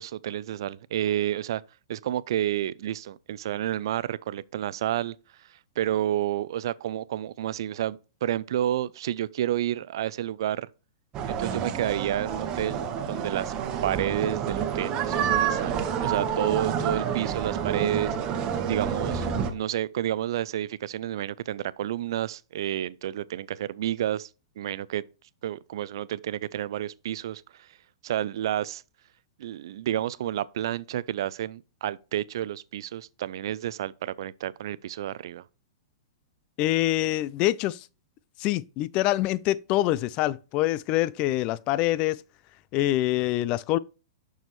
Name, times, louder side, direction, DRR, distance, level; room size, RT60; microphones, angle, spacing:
voice 1, 0.0-1.6 1.9-5.2 5.8-10.7 11.3-13.5 13.8-18.2 18.7-24.3 24.6-25.0 25.4-27.7 28.0-28.8 29.4-35.4, right 12 dB, 65° right, 0.4 m, -30 dB
sound 1, 11.1-19.5, right 8 dB, 30° right, 1.2 m, -28 dB
voice 2, 36.6-37.9 38.4-42.2 42.7-43.8, left 15 dB, 40° left, 0.4 m, -25 dB
6.6 x 6.3 x 3.1 m
hypercardioid pair, 120°, 3 cm